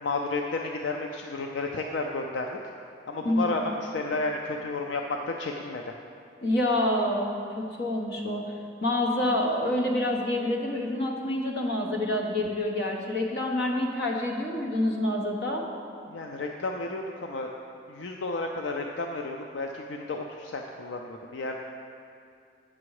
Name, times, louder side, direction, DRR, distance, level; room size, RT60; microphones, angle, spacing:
voice 1, 0.0-2.6 3.1-5.8 16.1-17.5 17.9-21.6, left 3 dB, 85° left, 2 dB, 0.5 m, -32 dB
voice 2, 3.2-3.5 6.4-8.4 8.8-15.6, left 1 dB, 60° left, 0 dB, 1.1 m, -27 dB
8.6 x 6.1 x 4.8 m, 2.4 s
head